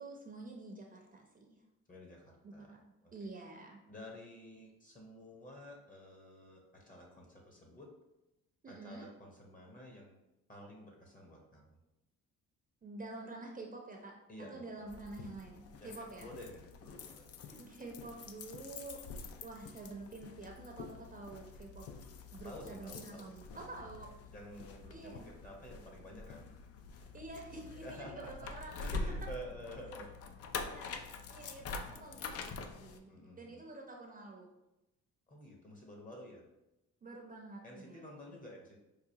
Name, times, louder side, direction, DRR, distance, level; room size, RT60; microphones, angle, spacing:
voice 1, 0.0-1.6 2.4-2.8 3.1-3.8 8.6-9.1 12.8-16.3 17.5-19.0 19.4-21.9 22.3-24.1 24.9-25.3 27.1-29.0 30.6-34.5 37.0-38.3, right 2 dB, 30° right, 1 dB, 0.6 m, -48 dB
voice 2, 1.9-2.7 3.0-3.3 3.9-7.9 8.7-10.2 10.5-11.8 14.3-14.6 15.8-17.3 22.4-23.9 24.3-26.5 26.9-27.1 27.8-28.3 28.8-30.1 33.1-33.6 35.3-36.4 37.6-38.8, equal, 25° left, -1 dB, 0.9 m, -51 dB
sound 1, 14.9-33.0, left 4 dB, 50° left, 0.4 m, -46 dB
4.8 x 2.3 x 2.7 m, 0.94 s
cardioid pair, 90°, 30 cm